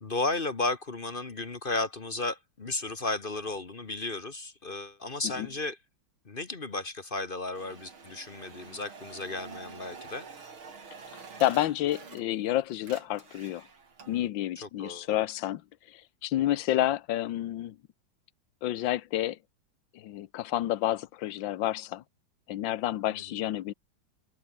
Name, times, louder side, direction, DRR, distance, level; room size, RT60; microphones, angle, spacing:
voice 1, 0.0-5.8 6.2-10.3 14.6-15.2 23.1-23.2, left 2 dB, 30° left, 1.3 m, -34 dB
sound 1, 7.5-12.5 12.8-14.3, right 5 dB, 85° right, 4.1 m, -47 dB
voice 2, 11.4-13.7 14.1-15.6 15.9-17.8 18.6-19.4 19.9-22.0 22.5-23.7, left 13 dB, 70° left, 1.6 m, -29 dB
open air
omnidirectional pair, 2.2 m